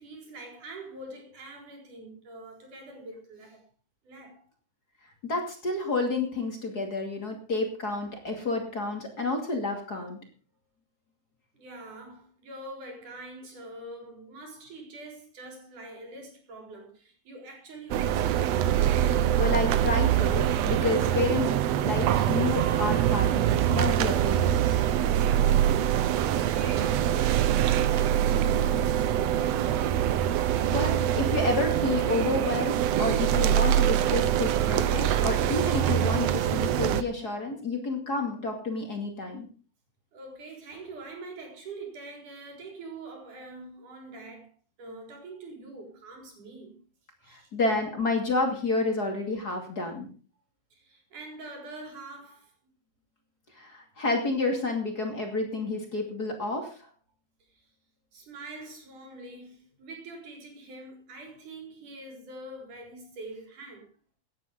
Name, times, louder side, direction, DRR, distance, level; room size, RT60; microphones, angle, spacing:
voice 1, 0.0-3.6 4.0-4.5 11.5-18.5 25.8-29.0 40.1-44.5 44.8-46.8 47.2-47.5 50.7-52.5 57.5-57.7 58.1-63.9, right 2 dB, 90° right, 5.9 m, -44 dB
voice 2, 5.2-10.2 19.4-24.8 30.7-39.5 47.3-50.1 53.5-56.9, left 3 dB, 30° left, 2.8 m, -30 dB
sound 1, 17.9-37.0, right 11 dB, 70° right, 1.9 m, -24 dB
16.5 x 10.0 x 5.2 m
omnidirectional pair, 3.5 m